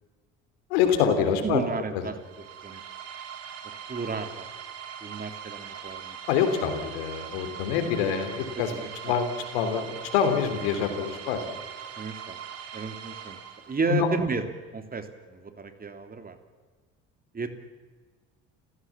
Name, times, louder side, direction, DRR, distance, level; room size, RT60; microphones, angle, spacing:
voice 1, 0.7-1.6 6.3-8.7 9.0-9.3 9.5-11.4 13.9-14.1, left 7 dB, 80° left, 8 dB, 3.5 m, -25 dB
voice 2, 1.4-2.2 2.6-2.8 3.9-4.5 5.0-6.4 8.5-9.2 12.0-12.4 12.7-13.4 13.7-16.4 17.3-17.5, right 4 dB, 30° right, 7 dB, 3.1 m, -33 dB
sound 1, 2.2-14.0, right 8 dB, 55° right, 4.3 m, -41 dB
30.0 x 16.5 x 7.3 m, 1.4 s
hypercardioid pair, 70°, 30 cm